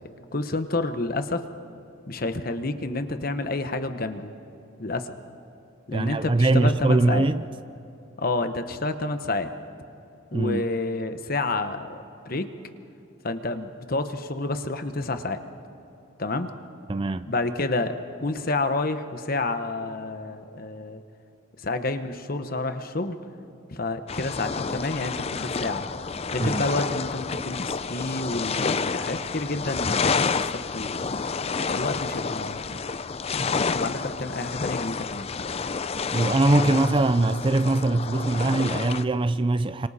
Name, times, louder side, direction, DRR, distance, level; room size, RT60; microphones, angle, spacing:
voice 1, 0.3-1.4 2.1-4.3 4.8-5.1 5.9-7.3 8.2-9.5 10.3-11.9 12.2-12.5 13.2-15.4 16.2-16.5 17.3-21.0 21.6-23.2 23.7-25.9 26.3-31.1 31.7-32.8 33.7-35.3, left 2 dB, 45° left, 1.1 m, -29 dB
voice 2, 5.9-7.4 10.3-10.6 16.9-17.3 26.4-26.6 36.1-39.9, right 2 dB, 25° right, 0.4 m, -22 dB
sound 1, 24.1-39.0, left 5 dB, 30° left, 0.5 m, -29 dB
29.5 x 26.0 x 4.3 m
head